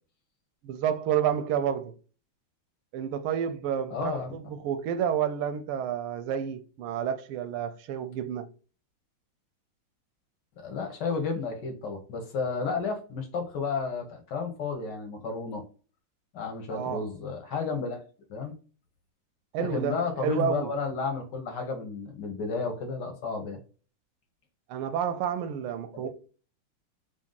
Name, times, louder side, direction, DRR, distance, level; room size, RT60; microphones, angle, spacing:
voice 1, 0.6-2.0 2.9-8.5 16.7-17.1 19.5-20.7 24.7-26.1, right 9 dB, 85° right, 1.5 m, -30 dB
voice 2, 3.9-4.3 10.6-15.6 16.3-18.0 18.3-18.5 19.6-23.6 25.9-26.1, left 4 dB, 65° left, 1.3 m, -32 dB
3.7 x 2.6 x 3.7 m
omnidirectional pair, 2.3 m